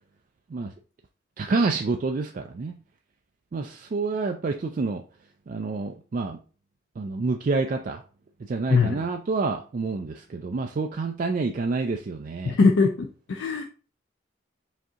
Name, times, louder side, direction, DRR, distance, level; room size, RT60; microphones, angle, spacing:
voice 1, 1.4-2.8 3.5-5.0 5.5-6.4 7.0-8.0 8.4-12.6, right 3 dB, 45° right, 4 dB, 0.3 m, -28 dB
voice 2, 8.7-9.0 12.4-13.6, left 4 dB, 75° left, 4 dB, 0.4 m, -21 dB
5.1 x 2.8 x 3.6 m, 0.37 s
head